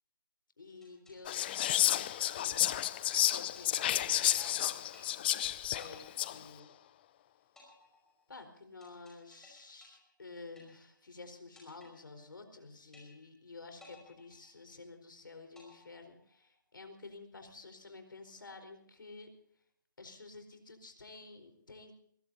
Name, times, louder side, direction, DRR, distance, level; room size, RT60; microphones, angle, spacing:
voice 1, 0.6-2.6 3.3-6.7 8.3-19.3 20.0-22.0, left 3 dB, 80° left, 7 dB, 4.5 m, -51 dB
sound 1, 0.8-3.1 3.6-4.6 4.9-5.5 5.8-7.1 7.6-11.1 11.6-12.6 12.9-13.5 13.8-15.1 15.6-16.6, left 3 dB, 5° left, 5.1 m, -61 dB
Whispering, 1.2-6.4, left 12 dB, 30° left, 0.5 m, -31 dB
23.0 x 20.5 x 2.8 m, 0.66 s
figure-of-eight pair, 150°, 11 cm